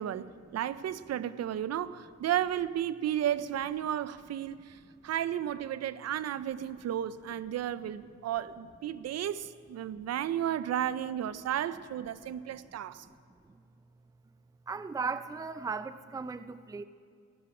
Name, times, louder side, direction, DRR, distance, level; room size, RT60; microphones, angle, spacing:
voice 1, 0.0-13.1, right 10 dB, 55° right, 0.6 m, -33 dB
voice 2, 14.7-16.8, right 4 dB, 10° right, 0.5 m, -36 dB
18.5 x 13.0 x 4.9 m
cardioid pair, 90°, 30 cm